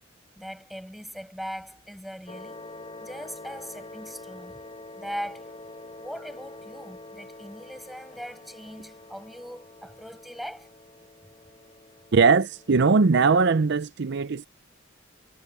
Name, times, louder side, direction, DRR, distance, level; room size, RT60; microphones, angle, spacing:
voice 1, 0.4-2.6 3.0-4.6 5.0-5.6 6.0-10.7, equal, ahead, 5.8 m, -40 dB
sound 1, 2.3-13.1, left 2 dB, 30° left, 7.3 m, -45 dB
voice 2, 12.1-14.5, right 4 dB, 60° right, 0.6 m, -20 dB
head